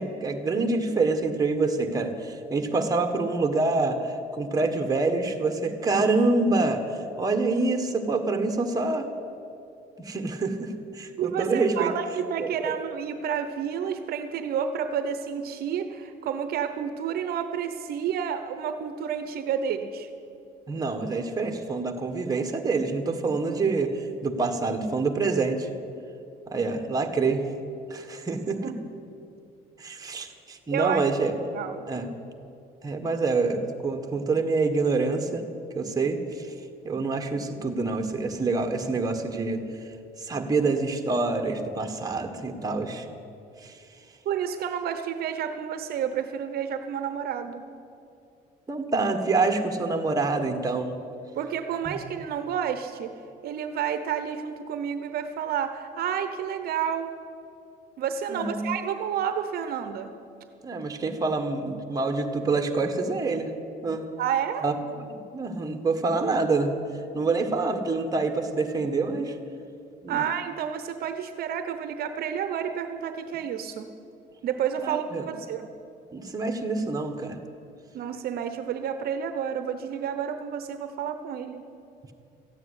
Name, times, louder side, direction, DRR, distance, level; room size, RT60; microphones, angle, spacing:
voice 1, 0.0-9.1 10.0-11.9 12.4-12.8 20.7-25.7 26.5-27.4 27.9-28.7 29.8-31.3 31.9-32.1 32.8-35.4 35.7-36.5 36.8-39.6 40.2-43.1 43.6-43.8 48.7-51.0 51.8-52.0 58.3-58.7 60.6-63.5 63.8-64.1 64.6-66.7 67.1-69.4 70.0-70.2 74.8-75.2 76.1-77.4, right 3 dB, 20° right, 5 dB, 1.6 m, -26 dB
voice 2, 11.2-20.1 28.6-28.9 30.7-31.0 31.5-31.9 44.2-47.6 51.4-53.1 53.4-57.2 58.0-60.1 64.2-64.7 70.1-73.9 74.4-75.7 77.9-81.7, right 8 dB, 65° right, 9 dB, 0.9 m, -30 dB
14.0 x 9.1 x 9.8 m, 2.6 s
cardioid pair, 110°, 17 cm